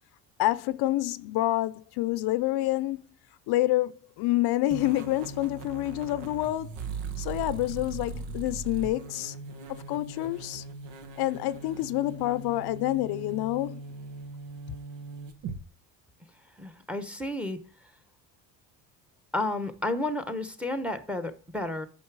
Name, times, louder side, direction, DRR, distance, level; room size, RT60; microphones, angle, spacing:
voice 1, 0.4-3.0 3.5-6.7 7.2-9.3 9.7-10.6 11.2-13.8, left 16 dB, 70° left, 0.6 m, -28 dB
sound 1, 4.7-15.6, right 4 dB, 90° right, 1.5 m, -40 dB
voice 2, 16.6-17.6 19.3-21.9, left 2 dB, 5° right, 0.9 m, -31 dB
9.4 x 5.9 x 4.7 m
cardioid pair, 145°, 40 cm